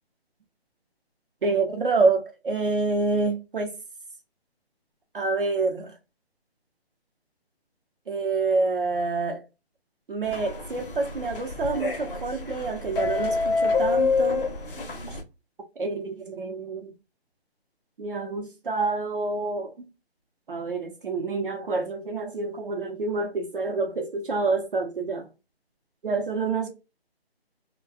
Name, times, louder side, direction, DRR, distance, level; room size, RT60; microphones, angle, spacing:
voice 1, 1.4-3.7 5.1-5.9 8.1-9.4 10.1-14.5 15.8-16.9 18.0-19.9 20.5-25.3 26.0-26.7, right 3 dB, 55° right, 0.6 m, -27 dB
sound 1, 10.2-15.2, left 4 dB, 55° left, 0.7 m, -27 dB
2.5 x 2.1 x 2.3 m
figure-of-eight pair, 160°, 32 cm